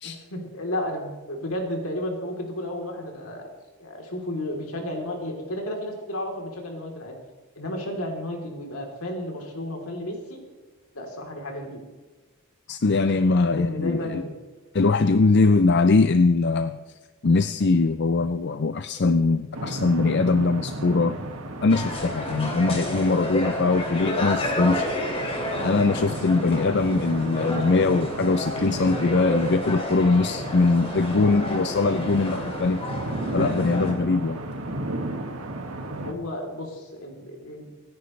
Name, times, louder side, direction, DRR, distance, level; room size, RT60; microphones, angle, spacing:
voice 1, 0.0-3.5 3.8-7.1 7.6-10.4 10.9-11.8 13.5-14.4 31.1-31.4 35.9-37.7, left 1 dB, 75° left, 1 dB, 3.5 m, -33 dB
voice 2, 12.7-14.2 14.7-16.8 17.2-21.2 21.6-24.9 25.6-32.9 33.3-34.4, left 3 dB, 50° left, 11 dB, 0.5 m, -21 dB
sound 1, 19.5-36.1, right 1 dB, 85° right, 1.8 m, -34 dB
sound 2, 21.7-33.9, left 1 dB, 25° left, 2.6 m, -31 dB
26.0 x 10.5 x 3.3 m, 1.3 s
head